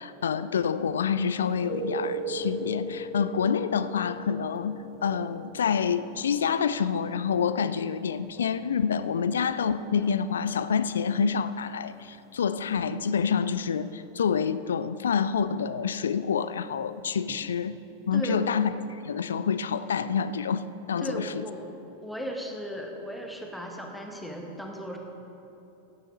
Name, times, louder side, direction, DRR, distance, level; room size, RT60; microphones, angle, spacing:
voice 1, 0.0-17.8 18.1-18.7 19.0-21.5, left 6 dB, 65° left, 14 dB, 0.4 m, -27 dB
sound 1, 1.5-13.0 17.3-17.4, right 2 dB, 15° right, 1.4 m, -40 dB
sound 2, 2.9-3.0 3.6-3.8 4.4-4.6 5.0-5.3 5.8-6.1 6.8-7.0 7.6-7.8 8.4-8.6 9.2-9.4 10.0-10.2 10.8-11.0 11.7-11.9, left 2 dB, 30° left, 2.8 m, -55 dB
voice 2, 18.1-18.5 21.0-25.0, equal, ahead, 1 dB, 1.7 m, -36 dB
16.5 x 10.0 x 4.0 m, 2.9 s
figure-of-eight pair, 90°, 0 cm